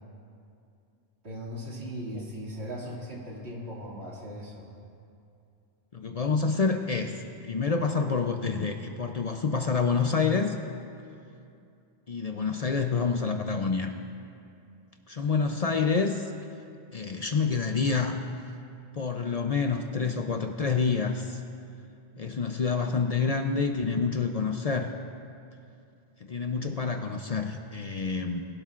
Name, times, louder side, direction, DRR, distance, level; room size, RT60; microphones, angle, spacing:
voice 1, 1.2-4.7, equal, 85° right, -5 dB, 2.6 m, -38 dB
voice 2, 5.9-10.6 12.1-13.9 15.1-16.2 16.9-18.2 18.9-21.4 22.2-24.9 26.3-28.4, left 5 dB, 45° left, 5 dB, 0.6 m, -28 dB
20.5 x 12.0 x 2.5 m, 2.5 s
omnidirectional pair, 1.1 m